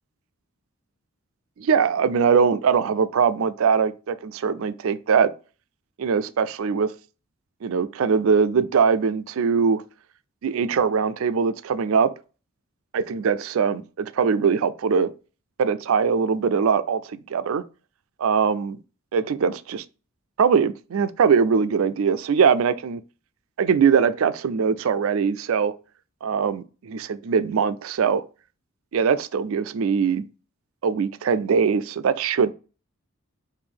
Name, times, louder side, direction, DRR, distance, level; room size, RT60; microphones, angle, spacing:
voice 1, 1.6-5.3 6.0-6.9 7.6-9.8 10.4-12.1 12.9-15.1 15.6-17.6 18.2-18.8 19.1-19.8 20.4-23.0 23.6-25.7 26.2-28.2 28.9-30.2 30.8-32.5, right 6 dB, 70° right, 0.4 m, -21 dB
5.1 x 2.6 x 3.5 m
head